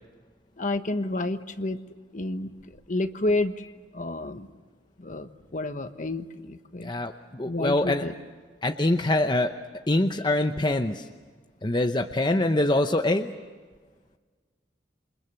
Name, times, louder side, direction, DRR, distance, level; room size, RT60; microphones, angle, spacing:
voice 1, 0.6-1.8 2.1-2.5 2.9-3.5 3.9-4.5 5.0-6.9 7.5-8.1, left 2 dB, 45° left, 9 dB, 1.2 m, -29 dB
voice 2, 6.8-8.1 8.6-9.5 9.9-11.1 11.6-13.3, left 1 dB, 25° left, 6 dB, 0.8 m, -24 dB
28.5 x 25.0 x 6.8 m, 1.5 s
head